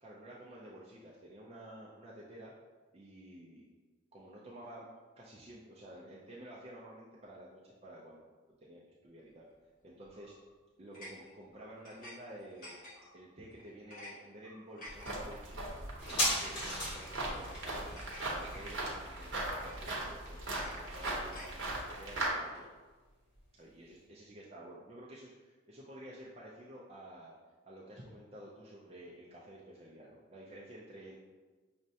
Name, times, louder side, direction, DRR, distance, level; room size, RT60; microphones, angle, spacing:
voice 1, 0.0-2.5 2.9-3.6 4.1-4.9 5.2-8.2 8.6-9.4 9.8-10.3 10.8-12.7 13.1-15.8 16.0-17.9 18.3-22.7 23.6-27.3 27.6-31.2, right 1 dB, 30° right, -5 dB, 0.4 m, -51 dB
sound 1, 10.1-10.4 10.9-12.2 12.4-13.2 13.6-14.1 14.4-15.1 15.8-16.1 16.9-18.4 18.8-19.0 19.4-20.0 20.4-21.5, left 1 dB, 40° left, 1.0 m, -51 dB
sound 2, 14.9-22.3, right 2 dB, 60° right, 0.8 m, -39 dB
sound 3, 16.0-23.1 23.4-23.5, left 1 dB, 60° left, 1.5 m, -39 dB
6.1 x 2.1 x 2.7 m, 1.3 s
head